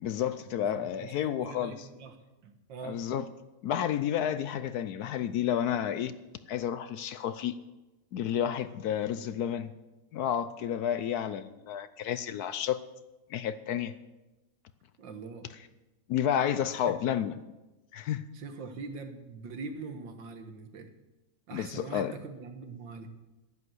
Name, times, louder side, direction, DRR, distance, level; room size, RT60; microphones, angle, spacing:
voice 1, 0.0-1.8 2.8-3.2 3.6-6.1 6.5-7.6 8.1-9.7 10.1-12.8 13.3-13.9 16.1-17.3 17.9-18.2 21.5-22.1, left 9 dB, 70° left, 13 dB, 1.0 m, -30 dB
voice 2, 0.6-2.2 2.4-3.1 15.0-15.5 18.3-20.9 21.5-23.1, right 4 dB, 85° right, 7 dB, 2.0 m, -43 dB
11.0 x 11.0 x 7.9 m, 1.1 s
omnidirectional pair, 2.0 m